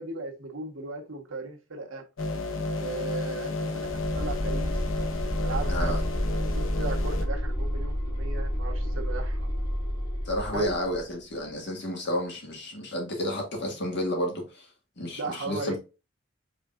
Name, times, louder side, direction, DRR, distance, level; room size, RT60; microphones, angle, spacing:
voice 1, 0.0-2.0 2.7-4.8 5.4-5.9 6.5-9.4 10.5-10.7 15.2-15.8, right 3 dB, 85° right, 1.3 m, -36 dB
sound 1, 2.2-7.3, left 2 dB, 80° left, 0.8 m, -32 dB
sound 2, 3.8-11.0, equal, 20° left, 1.6 m, -30 dB
voice 2, 5.7-6.0 10.3-14.7 15.0-15.8, equal, 60° left, 1.7 m, -31 dB
4.9 x 3.8 x 2.4 m
head